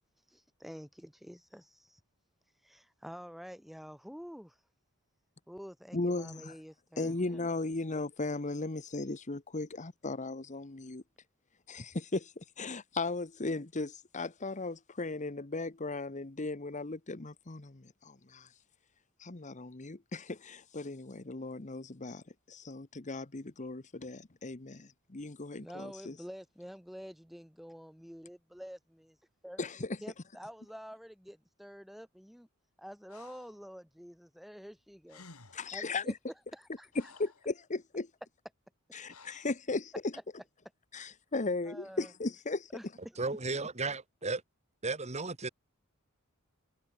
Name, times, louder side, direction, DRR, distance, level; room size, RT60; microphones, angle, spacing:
voice 1, 0.2-2.0 2.6-4.6 5.5-8.0 25.6-29.2 29.4-29.7 30.0-32.5 32.8-35.2 35.7-36.1 36.5-36.9 41.0-41.1 41.6-42.1 42.7-43.2, equal, ahead, 1.1 m, -48 dB
voice 2, 5.9-6.5 7.0-11.0 11.7-18.5 19.2-26.2 29.6-30.0 35.5-36.2 37.2-38.1 38.9-40.1 40.9-42.7, left 3 dB, 35° left, 1.1 m, -37 dB
Breathing, 33.1-33.6 34.8-34.9 35.1-35.8 36.5-37.5 39.1-39.6, left 4 dB, 80° left, 4.4 m, -55 dB
voice 3, 43.2-44.4 44.8-45.5, right 3 dB, 30° right, 1.9 m, -34 dB
head